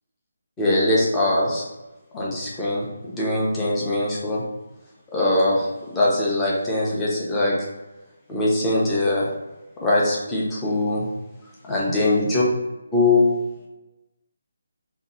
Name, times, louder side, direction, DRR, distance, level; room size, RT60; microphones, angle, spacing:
voice 1, 0.6-1.6 2.1-2.9 3.2-4.4 5.1-7.6 8.3-9.3 9.8-11.1 11.6-12.4 12.9-13.3, left 2 dB, 5° left, -5 dB, 0.5 m, -21 dB
2.7 x 2.5 x 4.0 m, 1.1 s
hypercardioid pair, 175°, 0 cm